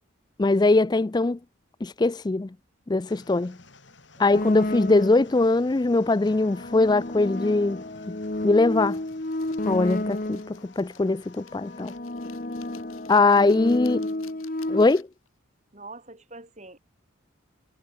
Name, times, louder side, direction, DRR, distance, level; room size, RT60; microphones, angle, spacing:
voice 1, 0.4-1.4 1.8-2.5 2.9-3.6 4.2-8.2 8.4-9.0 9.6-11.9 13.1-14.0 14.7-15.1, left 3 dB, 20° left, 0.4 m, -21 dB
sound 1, 3.1-12.0, left 3 dB, 60° left, 5.0 m, -53 dB
I can never tell if people like me, 4.3-5.4 6.2-10.7 11.4-14.8, left 1 dB, 40° left, 1.4 m, -31 dB
sound 2, 8.7-15.3, left 10 dB, 85° left, 5.0 m, -54 dB
voice 2, 15.7-16.8, right 2 dB, 35° right, 7.7 m, -45 dB
head